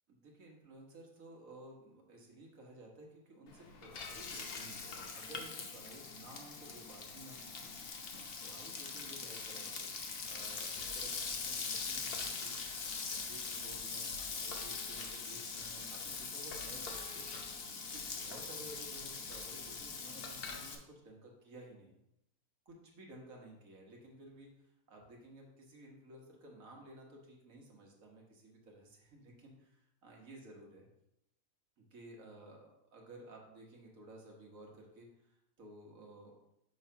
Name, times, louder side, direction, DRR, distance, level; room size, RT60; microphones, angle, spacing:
voice 1, 0.1-7.7 8.0-9.9 10.2-17.2 17.9-22.0 22.6-30.9 31.8-36.3, right 1 dB, 65° right, -1 dB, 1.6 m, -55 dB
Frying (food), 3.5-20.8, left 5 dB, 50° left, 0.8 m, -42 dB
6.2 x 3.1 x 5.6 m, 0.81 s
omnidirectional pair, 1.6 m